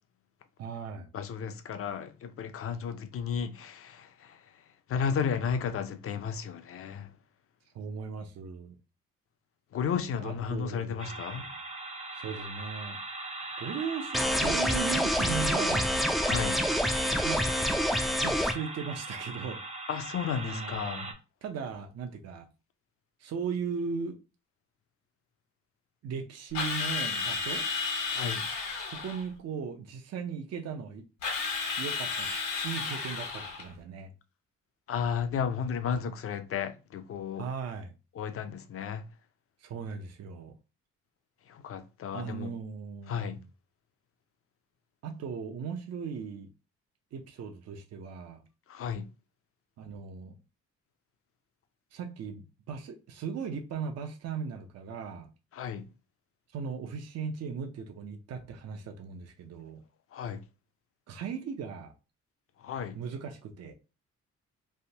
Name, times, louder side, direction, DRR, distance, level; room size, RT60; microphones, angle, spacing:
voice 1, 0.6-1.1 7.7-8.8 10.2-11.6 12.1-13.0 13.6-15.9 16.9-17.4 18.2-19.6 20.3-21.1 21.4-22.4 23.2-24.2 26.0-27.6 28.9-31.0 31.8-32.3 32.6-34.1 37.4-37.9 39.6-40.5 42.1-43.3 45.0-46.5 47.1-48.4 49.8-50.4 51.9-55.3 56.5-59.8 61.1-61.9 62.9-63.7, right 6 dB, 55° right, 0.7 m, -37 dB
voice 2, 1.1-4.4 4.9-7.1 9.7-11.4 16.2-16.6 19.9-21.1 28.1-28.5 34.9-37.5 38.1-39.0 41.5-42.5 43.1-43.4 48.7-49.1 55.5-55.9 60.1-60.4 62.6-63.0, left 7 dB, 50° left, 0.5 m, -33 dB
sound 1, 11.0-21.1, right 2 dB, 20° right, 0.7 m, -40 dB
sound 2, 14.1-18.5, equal, ahead, 0.3 m, -27 dB
Drill, 26.5-29.2 31.2-33.7, left 4 dB, 75° left, 1.3 m, -32 dB
3.4 x 2.1 x 2.7 m
cardioid pair, 90°, 30 cm